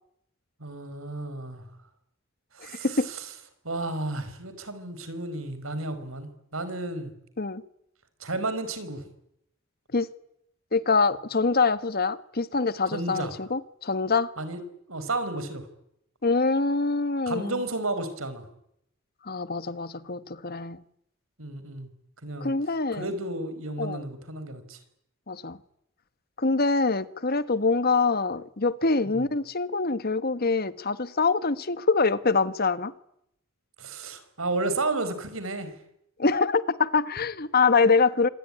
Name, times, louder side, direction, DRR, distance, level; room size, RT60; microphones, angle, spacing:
voice 1, 0.6-1.6 2.5-3.2 3.6-7.1 8.2-9.0 12.9-13.3 14.4-14.6 14.9-15.7 17.3-18.4 21.4-21.9 22.2-22.5 22.9-24.8 29.0-29.2 33.8-35.7, right 2 dB, 85° right, 4.8 m, -32 dB
voice 2, 2.6-3.1 7.4-7.6 9.9-10.1 10.7-14.3 16.2-17.6 19.2-20.8 22.4-23.1 23.8-24.0 25.3-25.6 26.4-32.9 36.2-38.3, left 4 dB, 45° left, 1.2 m, -25 dB
26.5 x 22.5 x 9.9 m
head